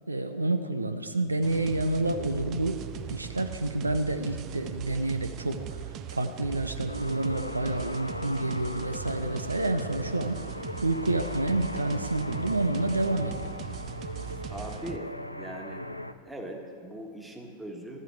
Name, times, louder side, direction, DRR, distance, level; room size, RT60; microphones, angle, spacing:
voice 1, 0.1-2.8 3.0-5.8 6.1-10.4 10.8-13.6, right 2 dB, 80° right, 9 dB, 0.6 m, -29 dB
sound 1, 1.4-15.0, right 10 dB, 35° right, 0.6 m, -40 dB
sound 2, 6.9-16.1, left 1 dB, 85° left, 0.4 m, -39 dB
voice 2, 14.5-15.8 16.3-18.0, right 1 dB, 5° right, 2 dB, 1.6 m, -40 dB
12.0 x 8.2 x 7.9 m, 2.3 s
figure-of-eight pair, 90°, 0 cm